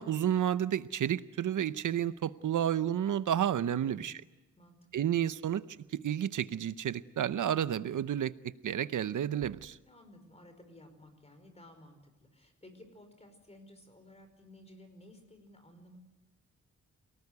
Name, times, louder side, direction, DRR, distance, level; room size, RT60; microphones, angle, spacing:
voice 1, 0.0-4.2 4.9-5.6 5.9-9.8, right 10 dB, 85° right, 15 dB, 0.8 m, -31 dB
voice 2, 3.8-4.2 4.5-4.8 9.8-16.0, left 1 dB, 20° left, 7 dB, 5.1 m, -55 dB
27.5 x 19.0 x 9.6 m, 1.1 s
wide cardioid pair, 165°, 30 cm